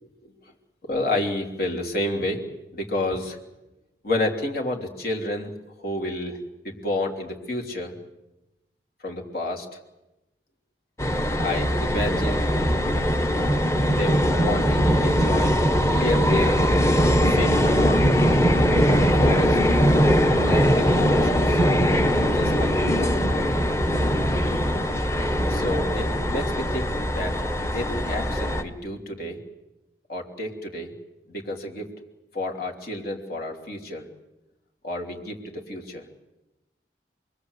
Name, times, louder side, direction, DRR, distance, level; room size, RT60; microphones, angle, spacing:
voice 1, 0.8-2.5 2.7-3.4 4.0-6.4 6.6-7.9 9.0-9.7 11.4-12.5 13.9-15.5 15.9-16.6 17.3-18.2 18.7-19.6 20.5-21.6 22.2-23.2 25.5-27.3 27.7-29.4 30.1-30.9 31.3-31.9 32.3-34.1 34.8-36.0, left 1 dB, 55° left, 1 dB, 3.4 m, -30 dB
sound 1, 11.0-28.6, equal, 15° left, 1.4 m, -21 dB
28.0 x 21.5 x 8.2 m, 0.99 s
head